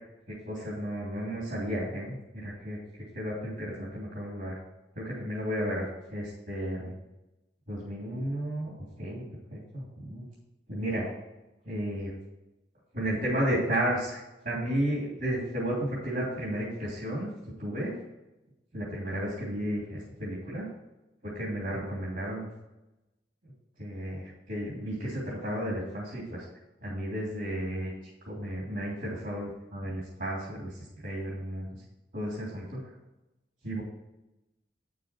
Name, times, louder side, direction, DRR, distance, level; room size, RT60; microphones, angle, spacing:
voice 1, 0.5-2.8 3.1-4.6 5.0-6.9 7.7-9.2 9.5-10.2 10.7-11.1 11.6-12.1 12.9-14.2 14.4-17.3 17.6-17.9 18.7-20.7 21.2-22.5 23.8-26.4 26.8-27.9 28.3-31.7 32.1-32.8 33.6-33.8, equal, 55° right, -5 dB, 3.0 m, -33 dB
8.8 x 7.0 x 4.5 m, 0.98 s
head